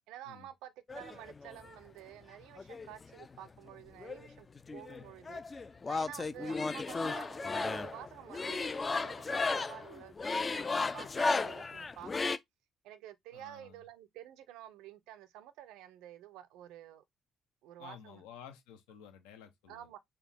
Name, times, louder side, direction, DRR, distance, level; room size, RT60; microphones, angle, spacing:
voice 1, 0.1-12.3 12.8-17.0 17.6-18.2 19.7-20.0, right 12 dB, 65° right, 0.4 m, -50 dB
sound 1, 0.9-1.7 2.6-3.7 4.0-12.4, left 3 dB, 30° left, 0.3 m, -35 dB
voice 2, 13.3-13.8 17.8-19.9, left 8 dB, 70° left, 0.6 m, -52 dB
3.8 x 2.3 x 3.4 m
figure-of-eight pair, 45°, 0 cm